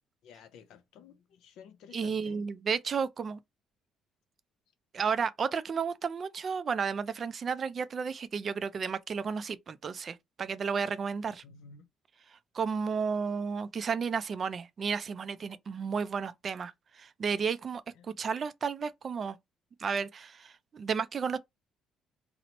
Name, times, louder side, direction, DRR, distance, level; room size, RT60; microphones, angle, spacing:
voice 1, 0.2-2.5 11.4-11.9 18.0-18.2, left 6 dB, 80° left, 0.5 m, -53 dB
voice 2, 1.9-3.4 4.9-11.4 12.3-19.4 19.8-21.4, right 6 dB, 40° right, 0.3 m, -33 dB
2.9 x 2.0 x 2.8 m
cardioid pair, 115°, 0 cm